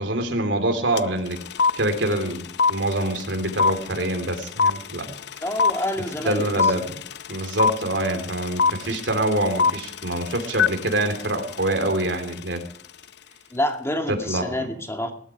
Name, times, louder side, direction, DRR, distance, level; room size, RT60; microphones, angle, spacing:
voice 1, 0.0-1.4 1.8-5.1 6.2-7.0 7.3-12.6 14.1-14.7, right 1 dB, 85° right, 5 dB, 3.2 m, -25 dB
sound 1, 1.0-1.1 1.3-12.4, left 5 dB, 65° left, 0.6 m, -23 dB
voice 2, 5.4-6.5 8.9-9.0 13.5-15.1, left 1 dB, 15° left, 4 dB, 2.4 m, -27 dB
19.5 x 12.0 x 4.9 m, 0.63 s
head